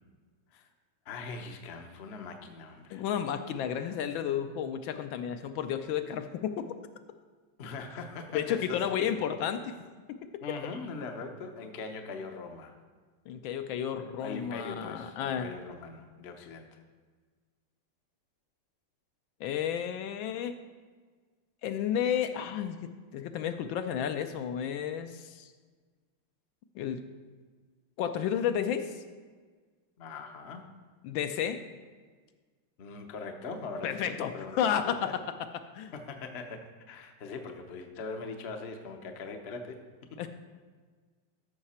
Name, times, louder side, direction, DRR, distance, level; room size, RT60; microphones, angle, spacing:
voice 1, 1.1-3.1 7.6-9.0 10.4-12.7 14.2-16.8 30.0-30.7 32.8-35.1 35.9-39.8 40.1-40.2, left 4 dB, 55° left, 4 dB, 0.7 m, -41 dB
voice 2, 2.9-6.7 8.3-9.7 10.1-10.2 13.3-15.5 19.4-20.6 21.6-22.8 23.1-25.5 26.8-27.0 28.0-29.0 31.0-31.6 33.8-35.1 35.7-35.9 40.2-40.3, left 9 dB, 75° left, 8 dB, 1.3 m, -32 dB
13.5 x 5.8 x 4.2 m, 1.5 s
omnidirectional pair, 2.3 m